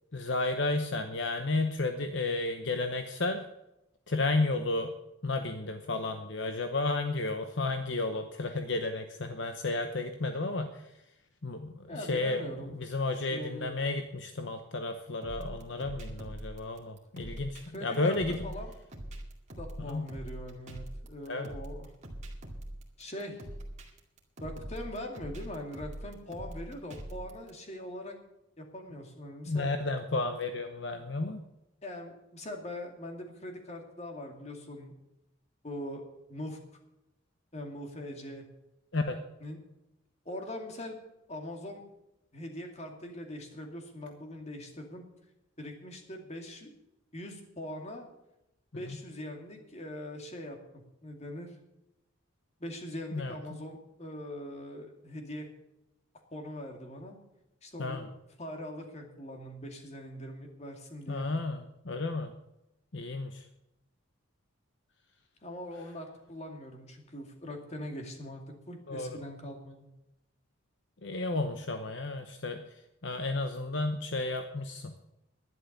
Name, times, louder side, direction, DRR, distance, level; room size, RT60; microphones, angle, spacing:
voice 1, 0.1-3.4 4.1-4.9 5.2-10.9 11.4-18.5 19.9-20.1 21.3-21.5 29.5-31.4 38.9-39.2 48.9-49.0 53.1-53.6 57.8-58.0 61.1-62.3 62.9-63.4 68.9-69.2 71.0-72.6 73.0-74.9, left 2 dB, 60° left, 7 dB, 0.9 m, -32 dB
voice 2, 11.9-12.7 13.1-13.7 17.7-18.7 19.6-21.9 23.0-23.4 24.4-28.1 28.6-29.7 31.8-34.9 35.6-36.6 37.5-38.5 39.4-39.6 40.3-41.0 41.3-41.8 42.3-45.0 45.6-46.7 47.1-48.1 48.7-51.6 52.6-55.5 56.3-57.2 57.6-58.1 58.4-61.3 65.4-69.9, left 1 dB, 30° left, 3 dB, 2.3 m, -42 dB
sound 1, 15.2-27.5, right 1 dB, 35° right, 2.3 m, -43 dB
11.5 x 11.0 x 6.6 m, 0.89 s
head